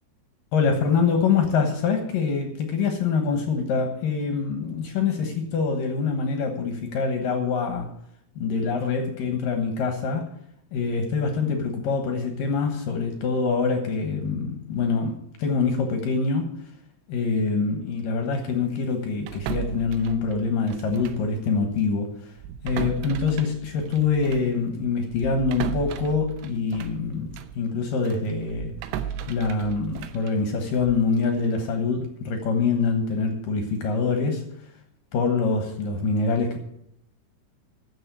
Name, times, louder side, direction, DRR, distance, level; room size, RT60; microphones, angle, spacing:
voice 1, 0.5-7.9 8.4-10.3 10.7-16.5 17.1-22.3 22.6-28.7 29.3-34.7 35.1-36.6, left 4 dB, 70° left, 4 dB, 2.2 m, -25 dB
sound 1, 19.3-21.3 21.6-21.8 22.4-27.6 28.0-31.1, right 9 dB, 85° right, 3.2 m, -35 dB
11.0 x 7.3 x 8.2 m, 0.74 s
omnidirectional pair, 5.6 m